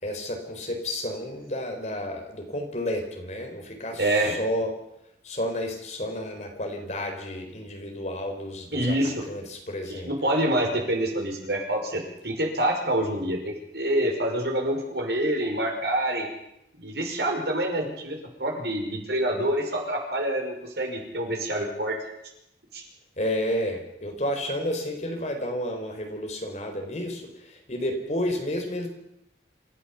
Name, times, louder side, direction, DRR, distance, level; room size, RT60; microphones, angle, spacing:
voice 1, 0.0-4.7 5.2-8.9 9.3-10.1 23.2-28.9, left 1 dB, 40° left, 3 dB, 4.3 m, -31 dB
voice 2, 4.0-4.4 8.7-9.1 9.9-16.3 16.7-22.0 22.7-22.8, right 1 dB, 75° right, 1 dB, 5.7 m, -26 dB
27.5 x 14.0 x 7.1 m, 0.83 s
head